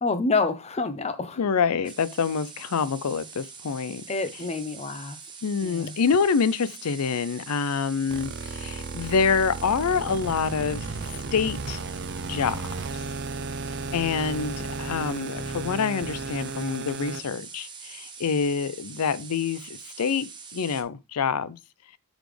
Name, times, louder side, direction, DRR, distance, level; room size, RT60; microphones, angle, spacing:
voice 1, 0.0-1.4 4.1-5.2 5.6-6.0, left 3 dB, 30° left, 0.7 m, -27 dB
voice 2, 1.4-4.0 5.4-11.8 12.2-12.8 13.9-21.6, left 5 dB, 80° left, 0.5 m, -26 dB
sound 1, 1.8-20.8, right 5 dB, 20° right, 0.9 m, -44 dB
sound 2, 8.1-17.2, right 3 dB, 50° right, 0.5 m, -34 dB
8.0 x 4.1 x 3.2 m
head